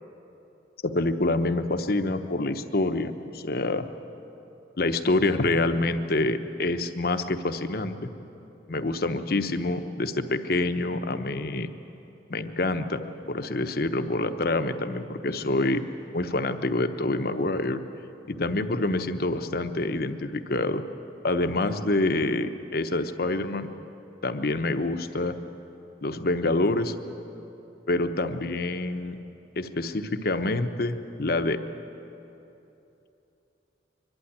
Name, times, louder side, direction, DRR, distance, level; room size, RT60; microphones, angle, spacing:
voice 1, 0.8-3.9 4.8-8.0 8.7-11.7 12.3-15.8 16.1-17.8 18.3-20.8 21.2-23.7 24.2-25.4 26.0-26.9 27.9-29.2 29.6-31.6, left 2 dB, 60° left, 8 dB, 0.9 m, -26 dB
23.5 x 11.5 x 9.5 m, 2.9 s
head